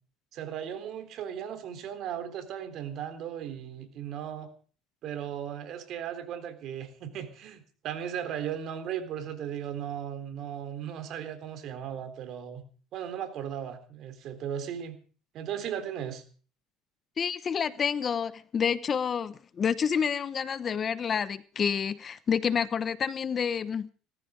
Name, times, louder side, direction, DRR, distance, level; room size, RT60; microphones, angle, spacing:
voice 1, 0.3-4.5 5.0-12.6 12.9-15.0 15.3-16.2, right 9 dB, 55° right, 3.8 m, -36 dB
voice 2, 17.2-23.9, left 7 dB, 35° left, 0.9 m, -29 dB
18.5 x 14.5 x 5.1 m
supercardioid pair, 115°, 0 cm